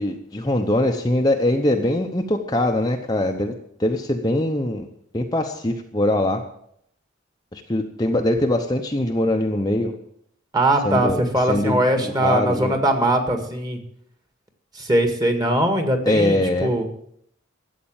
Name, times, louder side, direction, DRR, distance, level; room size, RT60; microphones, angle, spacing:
voice 1, 0.0-3.5 3.8-4.8 5.1-6.4 7.5-9.9 10.8-11.2 11.5-12.8 16.1-16.7, left 1 dB, 20° left, 3 dB, 0.8 m, -22 dB
voice 2, 10.5-13.8 14.8-16.8, right 1 dB, 20° right, 6 dB, 1.9 m, -21 dB
13.0 x 8.4 x 8.9 m, 0.69 s
head